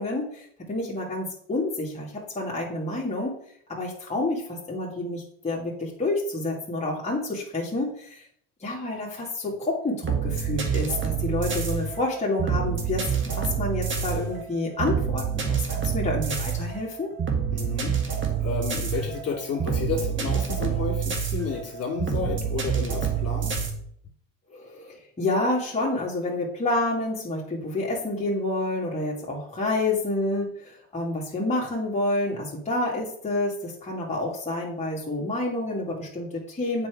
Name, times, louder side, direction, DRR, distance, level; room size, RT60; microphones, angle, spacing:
voice 1, 0.0-3.4 3.7-8.2 8.6-17.1 24.5-36.9, left 2 dB, 20° left, -5 dB, 2.1 m, -29 dB
sound 1, 10.0-23.7, right 7 dB, 35° right, 1.7 m, -27 dB
voice 2, 17.5-23.6, left 5 dB, 45° left, -1 dB, 2.7 m, -32 dB
7.4 x 4.9 x 4.8 m, 0.65 s
supercardioid pair, 85°, 36 cm